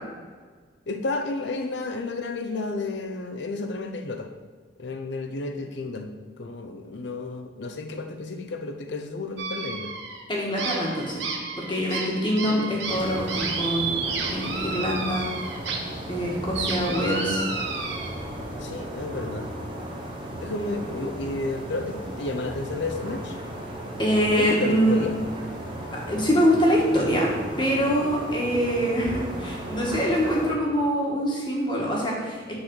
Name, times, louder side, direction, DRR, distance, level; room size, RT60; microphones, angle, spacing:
voice 1, 0.9-4.3 4.8-6.1 6.4-9.9 12.0-12.5 18.6-19.5 20.4-23.4 24.4-25.2, left 3 dB, 65° left, 6 dB, 0.6 m, -32 dB
sound 1, 9.4-10.2 10.6-15.8 16.1-18.1, right 4 dB, 70° right, 1.1 m, -31 dB
voice 2, 10.3-11.2 11.6-15.3 16.1-17.4 24.0-25.0 25.9-27.3 27.6-32.6, equal, 25° left, -3 dB, 1.4 m, -24 dB
sound 2, 12.9-30.5, right 1 dB, 25° right, 0.9 m, -36 dB
6.3 x 4.1 x 6.1 m, 1.5 s
head